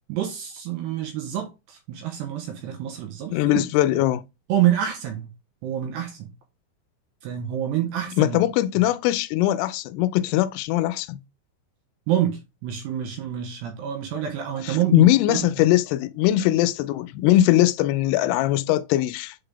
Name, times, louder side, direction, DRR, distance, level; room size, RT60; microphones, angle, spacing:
voice 1, 0.1-3.6 4.5-5.3 5.6-6.3 7.2-8.4 12.1-15.5, right 11 dB, 75° right, 2.7 m, -27 dB
voice 2, 3.3-4.2 8.2-11.2 14.6-19.4, left 14 dB, 85° left, 3.0 m, -21 dB
8.1 x 3.9 x 3.3 m
omnidirectional pair, 5.8 m